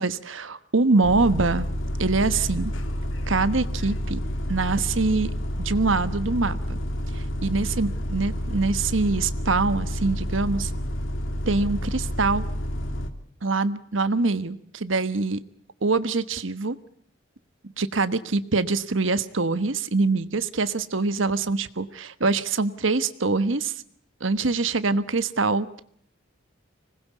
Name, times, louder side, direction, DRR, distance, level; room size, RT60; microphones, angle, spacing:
voice 1, 0.0-1.7 2.0-2.7 3.3-4.2 4.5-5.3 5.6-6.8 7.1-10.7 11.5-12.4 13.4-15.4 15.8-16.8 17.8-23.7 24.2-25.8, right 3 dB, 80° right, 12 dB, 1.3 m, -24 dB
Bus, 1.0-13.1, equal, 80° left, 2.8 m, -29 dB
25.5 x 20.0 x 8.3 m, 0.64 s
head